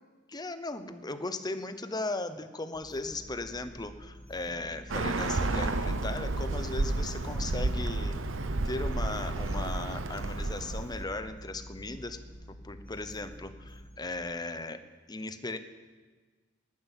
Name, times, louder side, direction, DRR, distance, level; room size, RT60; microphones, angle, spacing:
voice 1, 0.3-8.2 8.6-12.2 12.6-14.8 15.1-15.6, left 2 dB, 20° left, 10 dB, 0.8 m, -37 dB
sound 1, 2.7-13.9, equal, 5° left, 4.9 m, -49 dB
Bird, 4.9-11.0, right 2 dB, 80° right, 0.9 m, -31 dB
11.0 x 11.0 x 9.0 m, 1.4 s
head